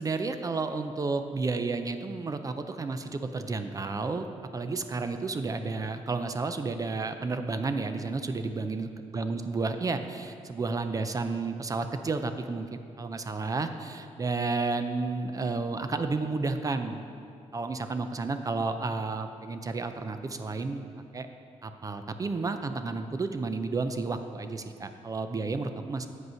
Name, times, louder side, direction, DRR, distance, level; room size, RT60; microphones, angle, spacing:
voice 1, 0.0-4.3 4.5-8.9 9.1-17.0 17.5-20.8 21.1-21.3 21.6-26.1, right 3 dB, 30° right, 8 dB, 0.4 m, -31 dB
7.9 x 5.3 x 5.6 m, 2.4 s
cardioid pair, 105°, 12 cm